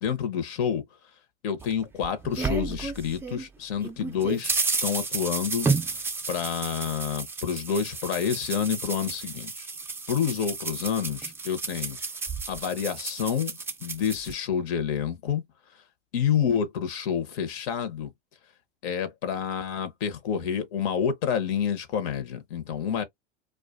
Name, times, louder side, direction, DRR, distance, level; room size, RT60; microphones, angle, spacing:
voice 1, 0.0-0.8 1.4-4.5 4.8-6.0 6.3-9.7 10.1-12.0 12.5-15.4 16.1-18.1 18.8-23.0, left 8 dB, 65° left, 0.8 m, -28 dB
sound 1, 1.6-3.4 3.8-14.3, right 4 dB, 10° right, 0.3 m, -32 dB
2.4 x 2.4 x 2.3 m
hypercardioid pair, 100°, 33 cm